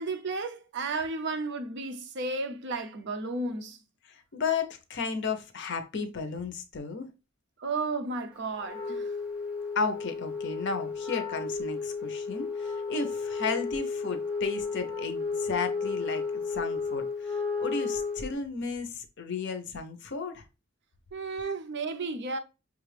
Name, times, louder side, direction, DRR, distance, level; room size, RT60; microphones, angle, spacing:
voice 1, 0.0-3.8 7.6-9.1 21.1-22.4, right 3 dB, 60° right, 0.5 m, -33 dB
voice 2, 4.1-7.1 9.8-20.4, left 4 dB, 60° left, 0.6 m, -34 dB
Wind instrument woodwind instrument, 8.6-18.3, left 4 dB, 5° right, 0.8 m, -33 dB
5.4 x 2.4 x 3.2 m
head